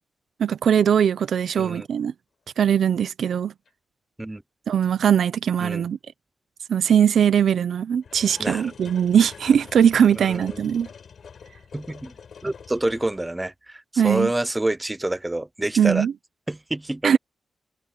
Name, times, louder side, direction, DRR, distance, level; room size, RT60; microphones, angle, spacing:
voice 1, 0.4-2.1 2.6-3.5 4.7-6.0 6.7-10.9 14.0-14.3 15.8-16.1 17.0-17.2, right 8 dB, 75° right, 0.7 m, -20 dB
sound 1, 1.2-1.3 1.8-2.0 2.5-2.6 3.7-3.8 4.8-4.9 5.8-5.9 8.0-13.5, left 6 dB, 60° left, 5.5 m, -45 dB
voice 2, 1.6-1.9 4.2-4.4 5.6-5.8 8.4-8.7 10.1-10.8 11.7-12.1 12.4-16.1 16.5-17.2, right 1 dB, 10° right, 0.5 m, -28 dB
wide cardioid pair, 165°, 0 cm